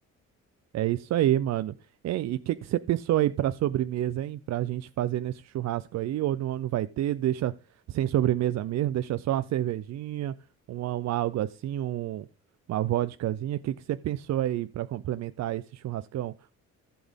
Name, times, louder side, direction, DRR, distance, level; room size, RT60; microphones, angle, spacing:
voice 1, 0.7-1.7 2.0-7.5 7.9-10.3 10.7-12.3 12.7-16.6, right 13 dB, 60° right, 13 dB, 0.5 m, -28 dB
15.0 x 6.0 x 3.6 m, 0.34 s
cardioid pair, 90°, 30 cm